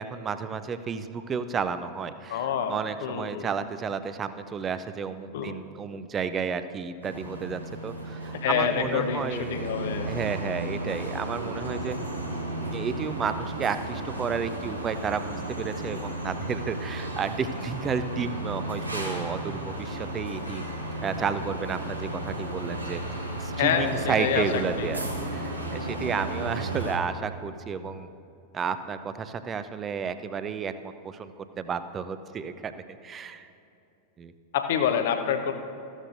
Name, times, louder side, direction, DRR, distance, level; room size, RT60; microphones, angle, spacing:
voice 1, 0.0-2.4 2.7-12.0 12.6-20.6 21.0-23.0 23.4-25.0 25.3-28.1 28.5-32.7 33.0-33.5 34.2-34.3, right 6 dB, 25° right, 11 dB, 0.5 m, -32 dB
voice 2, 2.3-3.5 5.3-5.6 8.4-10.1 23.6-24.9 34.5-35.5, left 8 dB, 55° left, 7 dB, 0.8 m, -27 dB
sound 1, 7.0-27.0, right 1 dB, 85° right, 1.3 m, -34 dB
14.5 x 12.5 x 2.6 m, 2.8 s
figure-of-eight pair, 90°, 0 cm